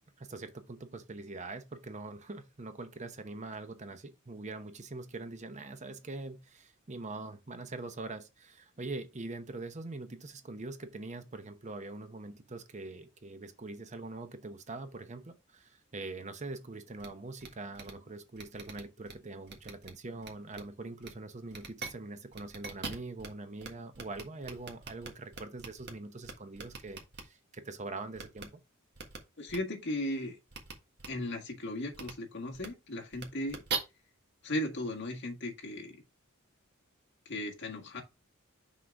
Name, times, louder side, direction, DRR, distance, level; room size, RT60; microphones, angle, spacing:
voice 1, 0.2-28.5, right 2 dB, 35° right, 0.8 m, -43 dB
sound 1, 17.0-17.1 17.4-17.5 17.7-17.9 18.4-19.1 19.5-19.9 20.2-20.6 21.0-21.1 21.5-21.9 22.3-23.3 23.6-23.7 23.9-25.9 26.2-27.2 28.2-28.4 29.0-29.2 29.5-29.6 30.5-30.7 31.0-31.1 31.9-32.1 32.5-32.7 33.1-33.8, right 5 dB, 55° right, 1.6 m, -40 dB
voice 2, 29.4-30.4 31.1-33.6 34.4-36.0 37.3-38.0, left 1 dB, 55° left, 1.8 m, -36 dB
6.2 x 3.8 x 4.7 m
head